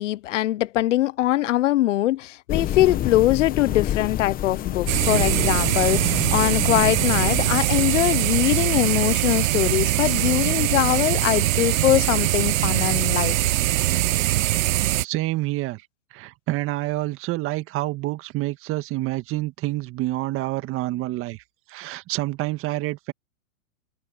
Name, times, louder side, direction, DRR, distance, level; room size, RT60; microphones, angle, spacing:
voice 1, 0.0-13.4, left 15 dB, 60° left, 0.8 m, -22 dB
sound 1, 2.5-7.5, left 12 dB, 20° left, 1.2 m, -28 dB
sound 2, 4.9-15.0, right 15 dB, 70° right, 0.5 m, -22 dB
voice 2, 15.0-15.8 16.1-21.4 21.7-23.1, right 18 dB, 30° right, 1.8 m, -28 dB
hypercardioid pair, 125°, 42 cm